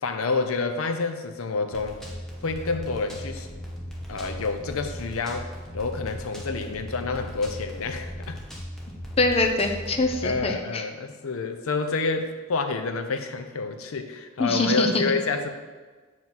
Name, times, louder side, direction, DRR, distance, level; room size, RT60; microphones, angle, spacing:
voice 1, 0.0-2.0 2.4-3.5 4.1-5.5 5.7-8.4 10.2-15.5, left 4 dB, 85° left, 7 dB, 0.6 m, -28 dB
sound 1, 1.7-10.4, equal, ahead, 0.9 m, -38 dB
voice 2, 9.2-10.8 14.4-15.0, left 2 dB, 30° left, 4 dB, 0.6 m, -23 dB
7.4 x 3.1 x 5.7 m, 1.4 s
head